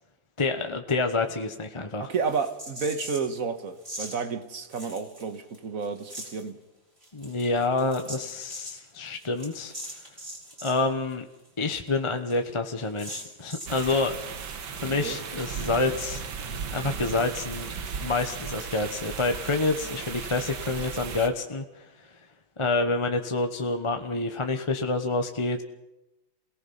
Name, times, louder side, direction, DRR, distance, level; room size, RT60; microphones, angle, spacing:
voice 1, 0.4-2.1 7.1-9.7 10.6-11.2 11.6-14.2 14.7-16.2 16.7-17.7 18.0-22.1 22.6-25.6, left 3 dB, 20° left, 0.8 m, -28 dB
voice 2, 2.0-6.6 15.0-15.2, right 5 dB, 45° right, 1.8 m, -31 dB
sound 1, 2.3-3.4 3.8-4.1 4.7-5.6 5.8-6.4 7.0-10.8 11.1-11.2 11.4-11.5 11.9-12.0 12.3-12.4 13.0-14.0, equal, 30° right, 6.1 m, -41 dB
sound 2, 13.7-21.3, right 6 dB, 85° right, 2.2 m, -36 dB
27.5 x 18.5 x 5.6 m
omnidirectional pair, 2.1 m